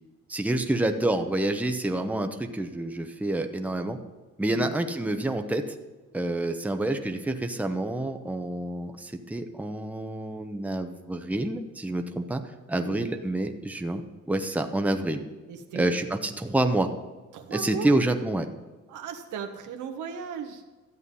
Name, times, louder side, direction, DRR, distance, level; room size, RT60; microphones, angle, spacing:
voice 1, 0.3-4.0 4.4-5.8 6.1-12.4 12.7-14.0 14.3-15.2 15.7-16.9 17.5-18.5, right 1 dB, 5° right, 5 dB, 0.9 m, -28 dB
voice 2, 12.7-13.1 15.5-15.9 17.3-18.0 18.9-20.6, right 7 dB, 80° right, 5 dB, 1.4 m, -37 dB
13.0 x 8.0 x 5.5 m, 1.3 s
cardioid pair, 90°, 30 cm